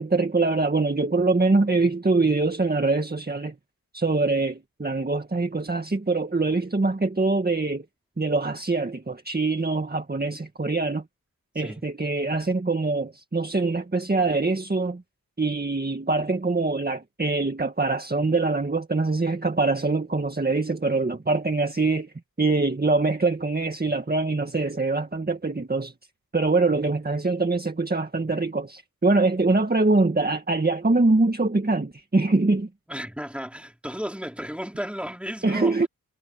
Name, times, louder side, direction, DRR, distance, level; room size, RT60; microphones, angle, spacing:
voice 1, 0.0-3.6 3.9-7.9 8.2-11.0 11.6-15.0 15.4-22.1 22.4-25.9 26.3-32.7 35.4-35.9, right 3 dB, 25° right, 1.9 m, -24 dB
voice 2, 32.9-35.9, equal, 5° right, 4.6 m, -34 dB
wide cardioid pair, 75°, 36 cm